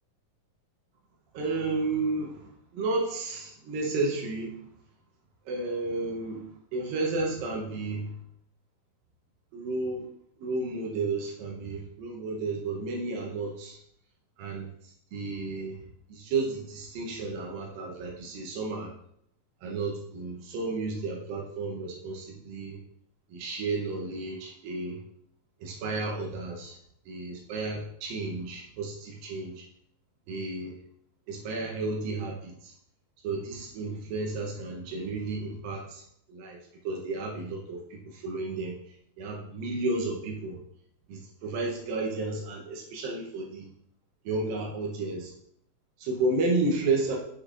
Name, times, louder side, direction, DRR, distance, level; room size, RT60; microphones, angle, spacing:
voice 1, 1.3-4.6 5.5-8.1 9.5-10.1 10.4-13.8 14.4-15.8 16.1-18.9 19.6-22.8 23.3-25.0 25.6-26.8 27.1-29.7 30.3-30.8 31.3-32.7 33.2-36.0 36.3-36.6 36.8-40.6 41.1-43.7 44.3-45.3 46.0-47.2, right 3 dB, 80° right, -1 dB, 2.6 m, -32 dB
7.8 x 6.6 x 2.4 m, 0.71 s
omnidirectional pair, 4.0 m